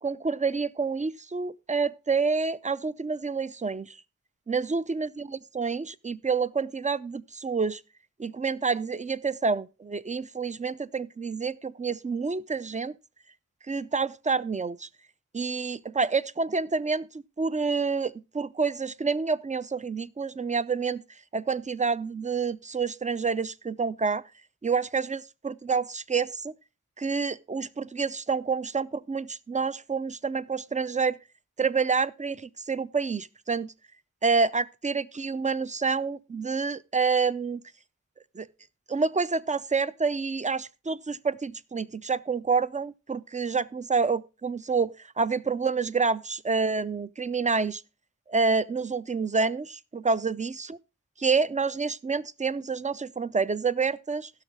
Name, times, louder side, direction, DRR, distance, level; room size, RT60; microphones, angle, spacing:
voice 1, 0.0-4.0 4.5-7.8 8.2-12.9 13.7-14.9 15.3-21.0 21.3-24.2 24.6-26.5 27.0-31.2 31.6-33.7 34.2-37.6 38.3-38.5 38.9-47.8 48.3-50.8 51.2-54.3, right 4 dB, 25° right, 0.4 m, -28 dB
15.5 x 6.3 x 3.5 m
wide cardioid pair, 50°, 31 cm